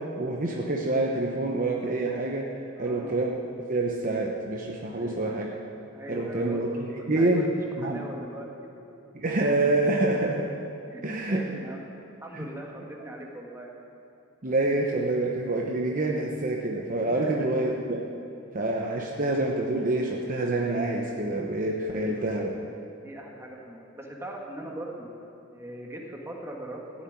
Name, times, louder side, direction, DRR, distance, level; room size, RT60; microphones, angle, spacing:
voice 1, 0.0-3.3 3.6-5.6 6.1-7.5 7.8-8.1 9.1-10.5 11.0-11.5 12.3-12.5 14.4-18.1 18.5-22.5, right 2 dB, 40° right, 0 dB, 0.9 m, -27 dB
voice 2, 2.8-3.2 4.9-5.2 5.9-6.6 7.1-7.5 7.8-8.9 10.9-11.8 12.2-13.7 17.1-17.3 21.9-22.6 23.0-25.1 25.5-27.0, right 1 dB, 15° right, -1 dB, 1.7 m, -40 dB
15.5 x 7.2 x 9.5 m, 2.8 s
head